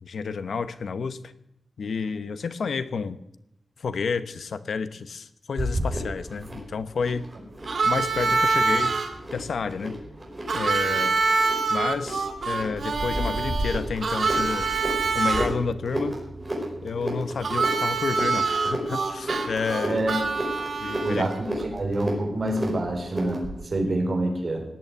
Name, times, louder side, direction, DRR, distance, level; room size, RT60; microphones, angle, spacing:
voice 1, 0.0-1.3 1.8-3.2 3.8-7.3 7.8-9.0 9.3-10.0 10.5-11.2 11.7-14.7 15.1-16.2 16.8-20.0 20.8-21.3 23.8-23.9, left 5 dB, 75° left, 13 dB, 0.9 m, -30 dB
sound 1, 5.6-23.6, right 1 dB, 20° right, 5.0 m, -33 dB
Harmonica, 7.7-9.1 10.5-15.5 17.4-21.4, right 4 dB, 65° right, 2.2 m, -25 dB
voice 2, 19.8-20.2 21.0-24.6, right 1 dB, 40° right, 2 dB, 4.2 m, -27 dB
18.0 x 8.5 x 9.3 m, 0.81 s
wide cardioid pair, 155°, 0 cm